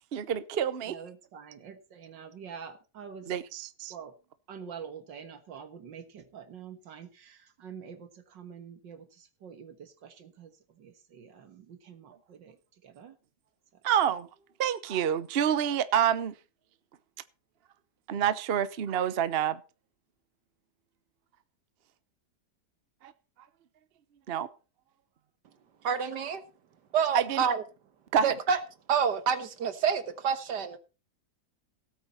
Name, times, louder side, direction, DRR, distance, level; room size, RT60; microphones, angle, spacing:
voice 1, 0.1-1.0 3.3-3.9 13.8-14.3 14.6-16.3 18.1-19.6 23.0-23.1 24.3-24.5 27.1-27.4 28.1-28.3, right 9 dB, 50° right, 0.8 m, -27 dB
voice 2, 0.9-3.3 3.9-4.2 4.5-13.2 13.7-13.8, right 7 dB, 85° right, 2.1 m, -46 dB
voice 3, 25.8-26.4 26.9-27.6 28.2-28.6 28.9-30.8, right 7 dB, 70° right, 1.9 m, -28 dB
17.0 x 8.6 x 4.2 m
omnidirectional pair, 1.9 m